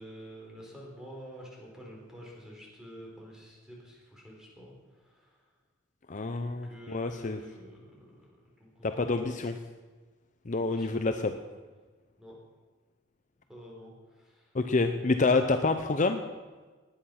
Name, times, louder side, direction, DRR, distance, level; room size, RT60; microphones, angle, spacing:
voice 1, 0.0-5.4 6.4-8.1 8.6-9.3 10.6-10.9 12.2-12.3 13.5-14.5, equal, 5° right, -3 dB, 4.3 m, -48 dB
voice 2, 6.1-7.4 8.8-9.5 10.5-11.4 14.5-16.2, left 3 dB, 40° left, 7 dB, 0.7 m, -27 dB
18.5 x 10.0 x 5.8 m, 1.3 s
head